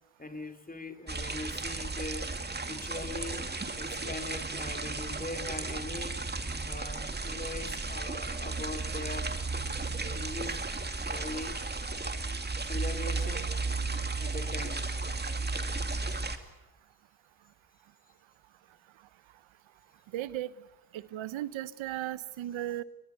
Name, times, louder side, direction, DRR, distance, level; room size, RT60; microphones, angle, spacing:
voice 1, 0.2-2.3 2.7-3.5 3.8-6.2 6.6-9.3 10.0-10.6 11.0-11.6 12.7-13.5 14.2-14.9, left 2 dB, 20° left, 6 dB, 3.4 m, -41 dB
sound 1, 1.1-16.4, right 3 dB, 20° right, 2.4 m, -34 dB
voice 2, 20.1-20.5 20.9-22.8, right 13 dB, 85° right, 17 dB, 0.9 m, -36 dB
23.0 x 20.0 x 8.2 m, 1.1 s
cardioid pair, 80°, 46 cm